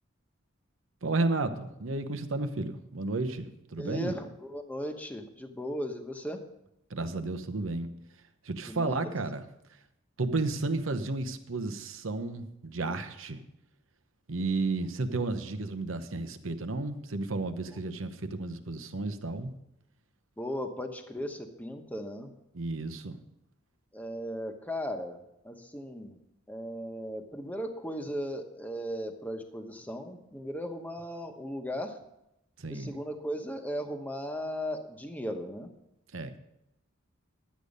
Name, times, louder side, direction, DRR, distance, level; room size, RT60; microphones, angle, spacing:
voice 1, 1.0-4.1 6.9-7.9 8.4-9.4 10.2-13.4 14.3-19.5 22.5-23.2 32.6-33.0 36.1-36.4, right 3 dB, 80° right, 10 dB, 0.9 m, -32 dB
voice 2, 3.8-6.4 8.7-9.1 17.7-17.8 20.4-22.3 23.9-26.2 26.5-32.0 32.7-35.7, equal, 10° left, 5 dB, 1.1 m, -37 dB
11.5 x 8.4 x 5.3 m, 0.84 s
head